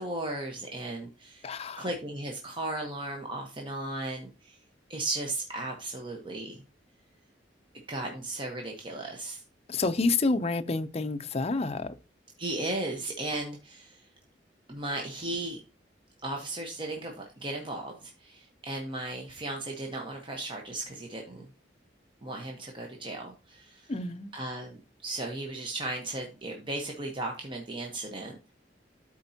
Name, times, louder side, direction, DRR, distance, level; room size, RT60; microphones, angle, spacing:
voice 1, 0.0-4.6 4.9-6.6 7.9-9.4 12.4-14.1 14.7-15.6 16.2-21.5 22.2-23.9 24.3-28.5, right 2 dB, 30° right, 1.0 m, -36 dB
voice 2, 1.4-1.9 9.7-12.0 23.9-24.3, left 3 dB, 35° left, 0.5 m, -29 dB
13.0 x 4.4 x 2.7 m
head